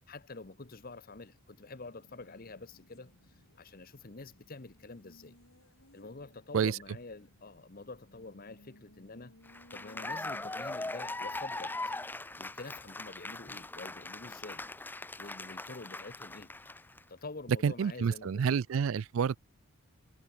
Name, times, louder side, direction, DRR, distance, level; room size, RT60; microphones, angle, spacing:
voice 1, 0.1-3.1 3.6-5.3 5.9-9.3 9.7-11.8 12.4-14.6 15.2-16.5 17.1-18.4, left 3 dB, 40° left, 1.0 m, -47 dB
Race car auto racing, 1.6-17.8, left 1 dB, 75° left, 7.4 m, -64 dB
Cheering / Applause, 9.5-17.0, left 2 dB, 10° left, 0.6 m, -40 dB
voice 2, 17.6-19.4, right 6 dB, 65° right, 0.4 m, -29 dB
head